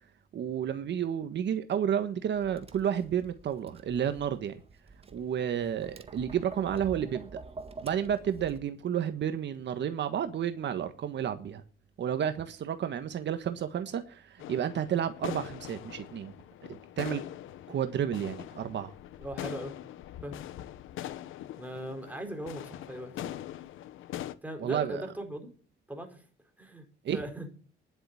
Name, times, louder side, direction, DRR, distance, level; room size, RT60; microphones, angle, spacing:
voice 1, 0.3-4.6 5.1-7.4 7.8-11.6 12.0-16.3 17.0-17.2 17.7-18.9 24.6-25.0 27.0-27.2, right 9 dB, 65° right, 1.5 m, -31 dB
Tap, 2.3-8.6, right 3 dB, 30° right, 1.7 m, -48 dB
sound 1, 14.4-24.3, left 13 dB, 85° left, 1.0 m, -42 dB
voice 2, 19.2-19.7 20.2-20.4 21.6-23.3 24.4-25.5 25.9-26.2 26.6-26.8 27.1-27.5, right 1 dB, 10° right, 4.5 m, -39 dB
11.0 x 7.9 x 9.6 m
cardioid pair, 90°, 20 cm